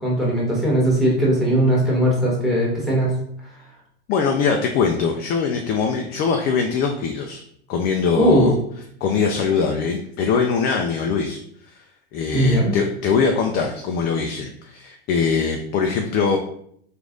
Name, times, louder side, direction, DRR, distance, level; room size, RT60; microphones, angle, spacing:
voice 1, 0.0-3.1 8.2-8.5 12.3-12.8, right 1 dB, ahead, -4 dB, 1.5 m, -19 dB
voice 2, 4.1-7.4 7.7-8.5 9.0-11.4 12.1-16.4, left 5 dB, 30° left, 3 dB, 0.4 m, -22 dB
3.1 x 2.5 x 3.7 m, 0.67 s
hypercardioid pair, 110°, 32 cm